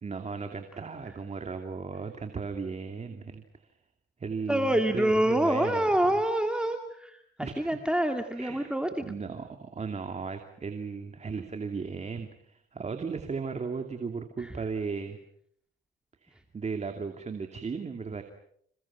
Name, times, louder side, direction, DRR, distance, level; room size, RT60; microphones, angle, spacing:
voice 1, 0.0-3.7 4.2-5.9 7.4-7.8 8.4-8.7 9.0-15.2 16.2-18.2, right 5 dB, 35° right, 6 dB, 2.7 m, -36 dB
voice 2, 4.5-9.1 14.4-14.6, right 1 dB, 5° right, 5 dB, 2.3 m, -27 dB
30.0 x 28.0 x 6.1 m, 0.67 s
cardioid pair, 90°, 20 cm